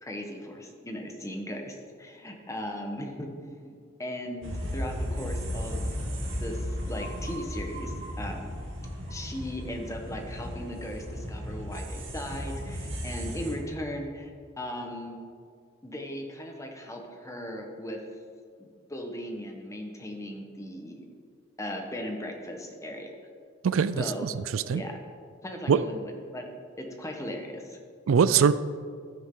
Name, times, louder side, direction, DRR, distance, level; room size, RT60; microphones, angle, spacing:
voice 1, 0.0-8.6 9.1-15.2 15.8-18.0 18.6-21.0 21.6-23.1 24.0-24.3 24.7-25.0 25.4-27.8, equal, 15° left, 2 dB, 1.2 m, -38 dB
sound 1, 4.4-13.5, equal, 65° right, 2.3 m, -35 dB
voice 2, 23.6-24.0 24.2-24.8 25.7-25.8 28.1-28.5, right 6 dB, 80° right, 15 dB, 0.4 m, -22 dB
12.0 x 10.0 x 3.8 m, 2.1 s
head